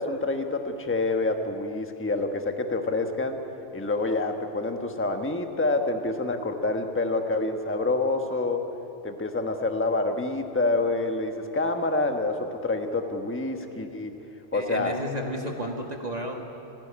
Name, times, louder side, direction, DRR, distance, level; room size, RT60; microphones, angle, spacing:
voice 1, 0.0-3.4 3.7-8.6 9.0-14.2 14.5-15.0, left 2 dB, 10° left, 5 dB, 1.2 m, -27 dB
voice 2, 14.5-16.4, equal, 30° right, 1 dB, 1.8 m, -32 dB
30.0 x 12.5 x 9.9 m, 2.9 s
omnidirectional pair, 1.3 m